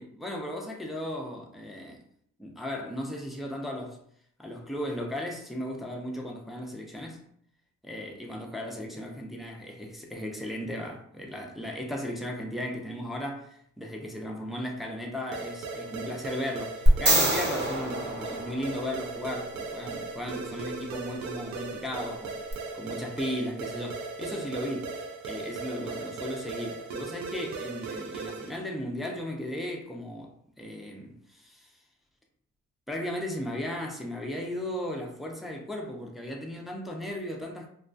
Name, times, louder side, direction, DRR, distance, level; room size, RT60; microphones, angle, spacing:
voice 1, 0.0-2.0 2.4-4.0 4.4-7.3 7.8-25.0 25.2-31.7 32.9-37.7, left 1 dB, ahead, 0.4 m, -36 dB
sound 1, 15.3-28.7, right 4 dB, 65° right, 0.4 m, -38 dB
sound 2, 16.9-19.1 22.5-22.6, right 1 dB, 35° right, 0.8 m, -24 dB
2.2 x 2.2 x 2.5 m
cardioid pair, 90°, 30 cm